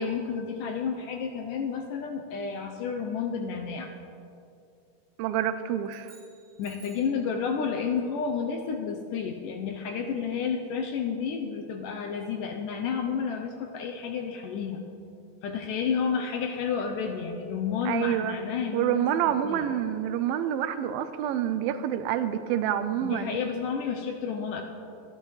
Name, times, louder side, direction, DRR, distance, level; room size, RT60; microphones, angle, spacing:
voice 1, 0.0-3.9 6.6-14.8 15.4-19.0 19.4-19.7 23.0-24.6, left 6 dB, 75° left, 4 dB, 2.0 m, -31 dB
voice 2, 5.2-6.1 17.9-18.4 18.7-23.4, right 10 dB, 80° right, 10 dB, 2.3 m, -27 dB
sound 1, 5.8-7.2, right 4 dB, 30° right, 2.4 m, -55 dB
21.5 x 11.5 x 3.2 m, 2.6 s
omnidirectional pair, 4.3 m